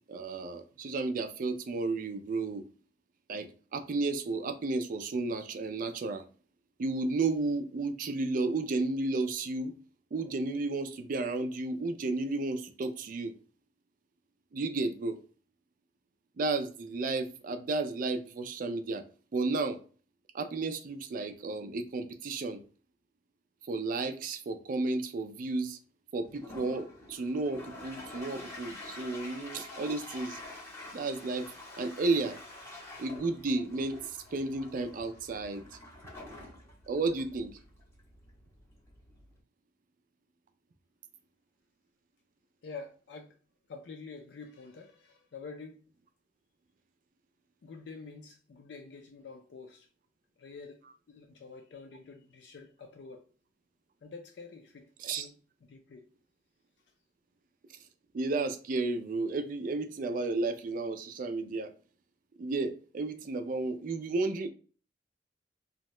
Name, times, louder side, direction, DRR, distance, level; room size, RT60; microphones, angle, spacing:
voice 1, 0.1-2.6 3.3-6.2 6.8-9.7 10.1-13.3 14.5-15.2 16.4-19.0 19.3-19.8 20.3-22.6 23.7-25.8 26.1-30.4 30.9-31.5 31.8-32.4 33.0-34.0 34.3-35.6 36.9-37.5 55.0-55.3 58.1-61.7 62.4-64.5, right 3 dB, 50° right, 0.4 m, -32 dB
Toilet flush, 26.2-39.4, left 2 dB, 15° left, 0.8 m, -48 dB
voice 2, 42.6-43.4 43.7-45.8 47.6-49.9 50.4-53.3 54.0-54.9 55.1-56.1, left 4 dB, 70° left, 0.4 m, -47 dB
2.7 x 2.1 x 3.0 m
head